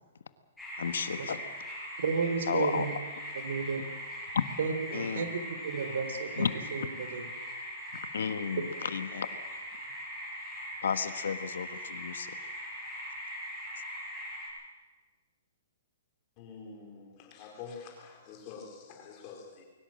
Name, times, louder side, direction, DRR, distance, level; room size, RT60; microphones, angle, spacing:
sound 1, 0.6-14.5, equal, 5° left, 7.9 m, -41 dB
voice 1, 0.8-1.4 2.5-2.8 4.3-4.4 4.9-5.3 6.4-6.5 8.1-9.3 10.8-12.4, left 6 dB, 90° left, 11 dB, 1.5 m, -32 dB
voice 2, 2.0-2.9 3.3-3.9 4.6-7.3, right 5 dB, 75° right, 9 dB, 3.5 m, -33 dB
voice 3, 16.4-19.6, left 5 dB, 25° left, 2 dB, 4.6 m, -47 dB
22.5 x 18.5 x 7.7 m, 1.3 s
hypercardioid pair, 170°, 0 cm